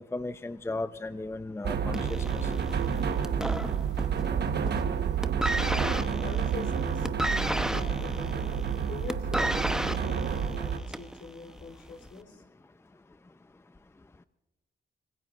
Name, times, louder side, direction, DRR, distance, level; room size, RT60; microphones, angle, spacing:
voice 1, 0.0-2.5, left 2 dB, 15° left, 12 dB, 0.6 m, -36 dB
sound 1, 1.6-10.8, right 7 dB, 65° right, 1.2 m, -29 dB
sound 2, 1.9-4.3 4.6-4.9 5.2-11.2 12.0-12.1, right 1 dB, 5° right, 0.9 m, -32 dB
voice 2, 6.2-12.4, left 4 dB, 70° left, 4 dB, 3.7 m, -43 dB
26.0 x 21.0 x 2.5 m, 1.1 s
cardioid pair, 65°, 19 cm